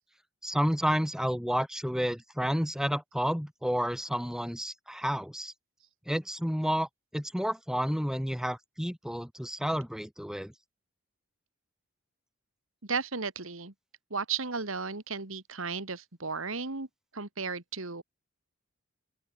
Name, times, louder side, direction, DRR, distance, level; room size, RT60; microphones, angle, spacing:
voice 1, 0.4-5.5 6.1-10.5, equal, 5° right, 6.3 m, -30 dB
voice 2, 12.8-13.7 14.1-16.9 17.1-18.0, right 5 dB, 75° right, 2.5 m, -34 dB
open air
head